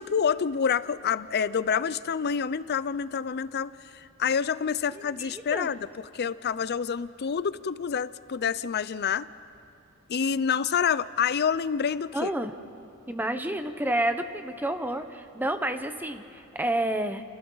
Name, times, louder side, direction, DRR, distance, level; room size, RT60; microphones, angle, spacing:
voice 1, 0.0-5.9 6.1-9.3 10.1-12.3, left 7 dB, 50° left, 16 dB, 0.5 m, -27 dB
voice 2, 4.9-5.7 12.1-12.5 13.1-17.2, right 1 dB, 10° right, 8 dB, 0.9 m, -30 dB
29.0 x 28.5 x 4.0 m, 2.6 s
head